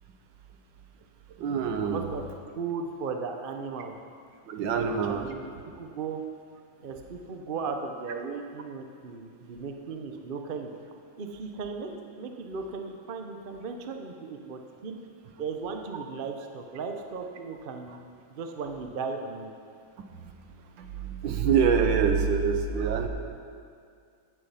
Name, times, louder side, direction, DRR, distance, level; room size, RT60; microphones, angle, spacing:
voice 1, 1.4-2.1 4.5-5.3 20.7-23.1, right 6 dB, 70° right, 5 dB, 1.5 m, -25 dB
voice 2, 1.9-2.2 2.5-3.9 4.7-6.2 6.8-10.7 11.2-15.0 15.4-18.0 18.3-19.5, right 5 dB, 50° right, 4 dB, 0.6 m, -36 dB
14.5 x 8.5 x 5.7 m, 2.3 s
omnidirectional pair, 2.2 m